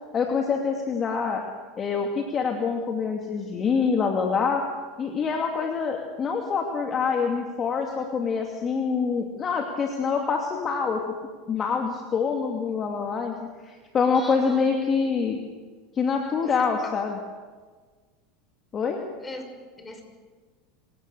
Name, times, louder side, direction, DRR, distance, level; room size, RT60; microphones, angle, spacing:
voice 1, 0.1-1.4 1.8-4.6 5.0-11.2 11.5-15.4 15.9-17.2 18.7-19.0, left 5 dB, 35° left, 2 dB, 2.5 m, -26 dB
voice 2, 14.1-14.6 16.4-16.6 19.2-19.4 19.8-20.0, left 2 dB, 15° left, 5 dB, 5.8 m, -38 dB
26.0 x 17.5 x 6.8 m, 1.5 s
hypercardioid pair, 90°, 0 cm